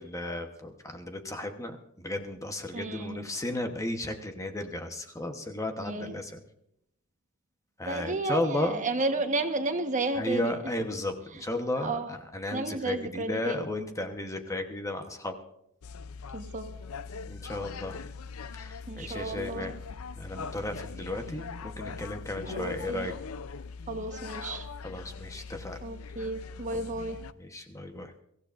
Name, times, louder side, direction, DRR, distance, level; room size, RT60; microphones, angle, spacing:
voice 1, 0.0-6.4 7.8-8.8 10.1-15.4 17.3-18.0 18.5-19.7 20.2-23.1 24.8-25.8 26.7-26.8 27.4-28.1, left 1 dB, 15° left, 5 dB, 1.1 m, -34 dB
voice 2, 2.7-3.3 5.8-6.2 7.9-10.5 11.8-12.1 12.5-13.7 16.3-16.6 18.9-19.7 22.5-23.1 23.9-24.7 25.8-27.2, right 2 dB, 35° right, 6 dB, 1.3 m, -32 dB
sound 1, 15.8-27.3, left 5 dB, 80° left, 0.6 m, -41 dB
23.5 x 15.0 x 2.6 m, 0.75 s
head